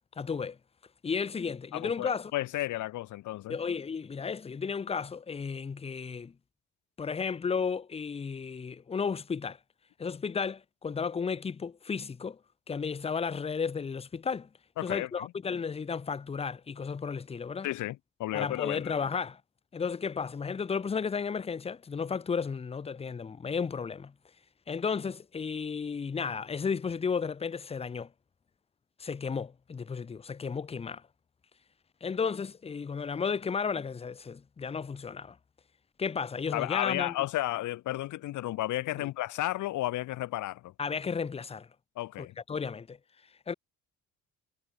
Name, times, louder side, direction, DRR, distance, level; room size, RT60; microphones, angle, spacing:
voice 1, 0.2-0.6 1.0-2.3 3.5-6.3 7.0-9.6 10.0-12.4 12.7-14.5 14.8-17.7 18.3-19.4 19.7-24.1 24.7-28.1 29.0-31.0 32.0-35.4 36.0-37.2 39.0-39.1 40.8-41.7 42.2-43.0 43.5-43.6, left 5 dB, 20° left, 0.5 m, -33 dB
voice 2, 1.7-3.6 14.8-15.3 17.6-18.9 36.5-40.7 42.0-42.3, left 15 dB, 80° left, 0.9 m, -33 dB
cardioid pair, 90°, 30 cm